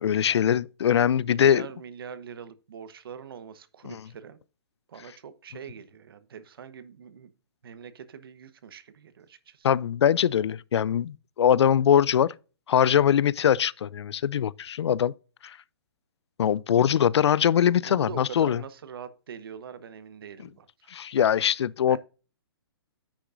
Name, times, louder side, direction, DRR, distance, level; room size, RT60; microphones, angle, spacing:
voice 1, 0.0-1.6 3.9-4.0 9.6-12.3 12.7-15.1 15.4-15.6 16.4-18.6 20.9-22.0, left 9 dB, 85° left, 0.4 m, -22 dB
voice 2, 1.1-4.4 4.9-7.3 7.6-9.7 17.8-20.9 21.2-21.3 21.9-22.0, right 7 dB, 60° right, 1.0 m, -43 dB
9.8 x 6.2 x 2.5 m
hypercardioid pair, 170°, 14 cm